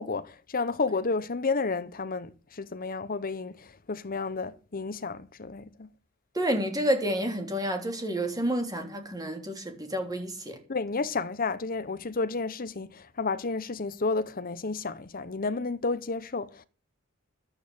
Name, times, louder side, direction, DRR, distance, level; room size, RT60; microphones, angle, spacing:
voice 1, 0.0-5.9 10.7-16.6, left 4 dB, 40° left, 0.9 m, -31 dB
voice 2, 6.3-10.6, right 1 dB, 15° right, 3.2 m, -29 dB
11.5 x 8.4 x 8.6 m
head